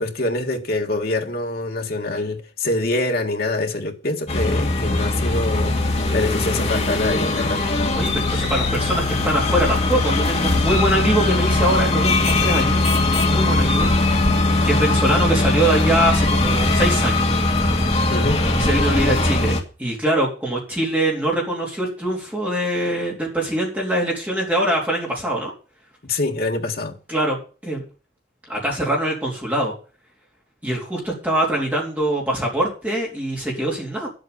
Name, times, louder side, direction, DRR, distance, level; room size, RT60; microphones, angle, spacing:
voice 1, 0.0-7.6 18.1-18.5 26.0-27.0, left 2 dB, 55° left, 1.9 m, -25 dB
sound 1, 4.3-19.6, left 2 dB, 35° left, 1.9 m, -20 dB
voice 2, 7.9-12.8 13.2-13.9 14.7-17.3 18.6-25.5 27.1-27.8 28.5-29.7 30.6-34.1, right 1 dB, 10° right, 3.7 m, -23 dB
11.0 x 8.0 x 7.0 m
head